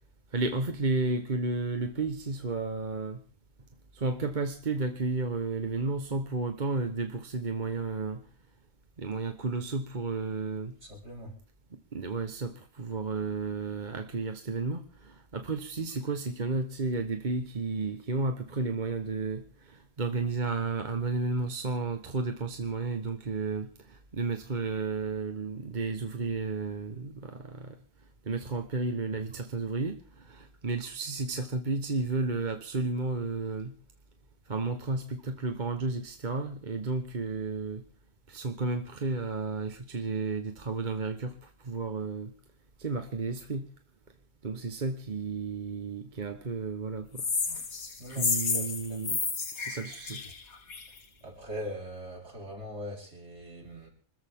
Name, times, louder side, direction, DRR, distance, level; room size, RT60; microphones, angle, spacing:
voice 1, 0.3-3.2 3.9-8.2 9.0-10.7 11.7-27.8 28.2-33.7 34.5-37.8 38.3-42.3 42.8-43.7 44.4-47.3 48.1-49.2 49.6-50.2, right 3 dB, 35° right, 1.3 m, -32 dB
voice 2, 10.8-11.3 48.0-49.0 51.2-53.9, equal, 50° right, 4.9 m, -41 dB
sound 1, 47.2-51.0, left 5 dB, 85° left, 2.2 m, -31 dB
26.0 x 14.0 x 3.6 m
omnidirectional pair, 1.5 m